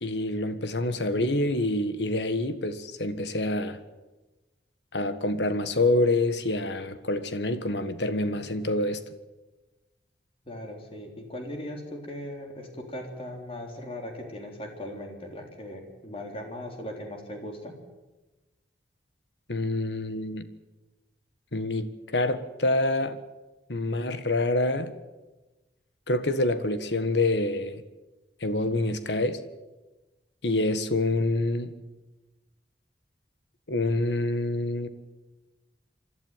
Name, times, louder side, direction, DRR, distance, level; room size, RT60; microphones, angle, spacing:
voice 1, 0.0-3.8 4.9-9.0 19.5-20.5 21.5-23.2 23.7-24.9 26.1-27.8 28.4-29.4 30.4-31.7 33.7-34.9, left 2 dB, 80° left, 11 dB, 1.6 m, -27 dB
voice 2, 10.5-17.7, left 1 dB, 35° left, 2 dB, 3.7 m, -38 dB
28.0 x 12.0 x 9.1 m, 1.1 s
head